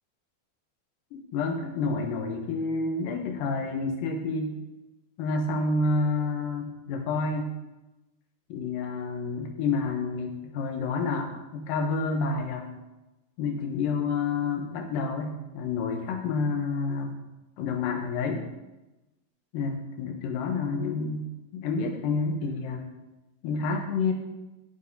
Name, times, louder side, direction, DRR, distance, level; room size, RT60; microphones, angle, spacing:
voice 1, 1.1-4.5 5.2-7.5 8.5-12.7 13.4-17.2 17.6-18.5 19.5-21.3 21.5-22.9 23.4-24.1, left 4 dB, 75° left, 2 dB, 2.5 m, -29 dB
13.5 x 4.8 x 2.7 m, 1.0 s
omnidirectional pair, 4.3 m